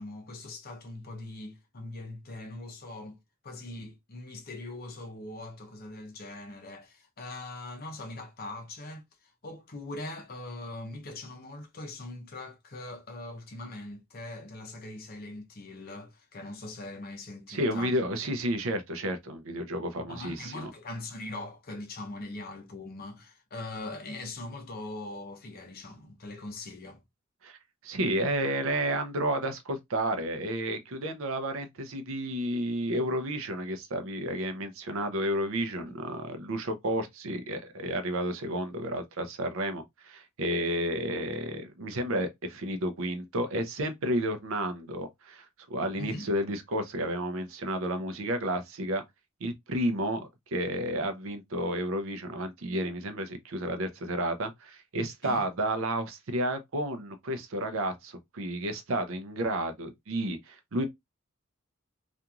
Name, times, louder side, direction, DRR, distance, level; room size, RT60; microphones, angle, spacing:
voice 1, 0.0-3.2 3.4-9.0 9.4-18.0 20.1-27.0 46.0-46.3 55.2-55.5, left 2 dB, 45° left, 0.7 m, -41 dB
voice 2, 17.5-20.7 27.4-27.6 27.8-49.0 49.4-60.9, right 1 dB, 70° right, 0.6 m, -31 dB
2.9 x 2.5 x 2.3 m
head